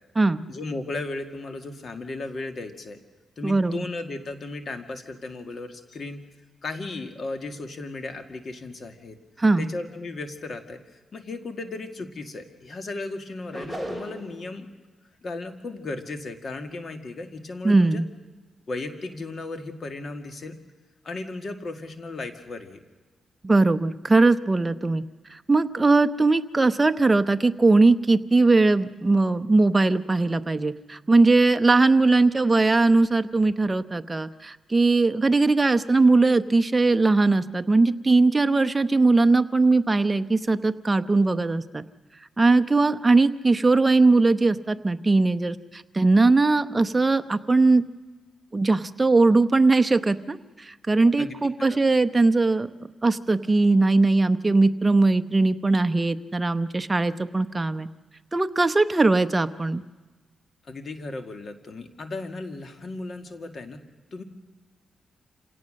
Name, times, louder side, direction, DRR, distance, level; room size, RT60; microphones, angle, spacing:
voice 1, 0.5-3.0 3.4-6.2 6.6-9.2 9.6-14.7 15.2-18.0 18.7-20.6 21.0-22.8 51.2-51.8 60.6-63.8 64.1-64.2, left 2 dB, 50° left, 7 dB, 2.0 m, -35 dB
voice 2, 3.4-3.8 9.4-9.7 17.6-18.1 23.4-25.0 25.5-41.8 42.4-47.8 48.5-50.4 50.7-52.7 53.0-57.9 58.3-59.8, right 3 dB, 20° right, 10 dB, 0.8 m, -20 dB
sound 1, 13.5-14.4, equal, 5° left, 3.4 m, -34 dB
27.0 x 17.5 x 6.5 m, 1.3 s
cardioid pair, 100°, 0 cm